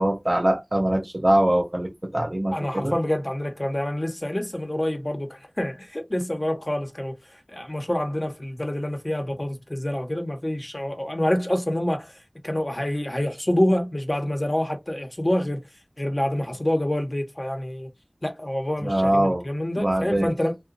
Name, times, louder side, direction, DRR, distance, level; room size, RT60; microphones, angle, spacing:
voice 1, 0.0-3.0 18.8-19.5 19.8-20.3, right 1 dB, 40° right, 0.5 m, -23 dB
voice 2, 2.5-7.2 7.5-12.1 12.4-15.6 16.0-17.9 18.2-20.6, left 1 dB, 40° left, 0.8 m, -27 dB
2.8 x 2.2 x 2.5 m
wide cardioid pair, 40°, 0 cm